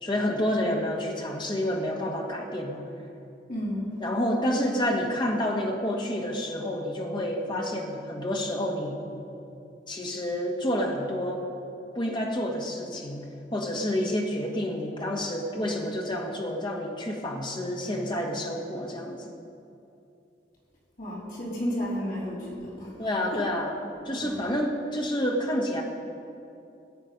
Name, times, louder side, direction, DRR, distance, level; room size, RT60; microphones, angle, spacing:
voice 1, 0.0-2.8 4.0-9.0 9.9-11.5 11.9-13.3 13.5-19.2 23.0-23.8 24.0-25.8, left 1 dB, 25° left, 0 dB, 1.6 m, -29 dB
voice 2, 3.5-3.9 21.0-23.1 24.1-24.4, equal, 50° left, -6 dB, 3.7 m, -32 dB
18.5 x 8.2 x 5.3 m, 2.6 s
head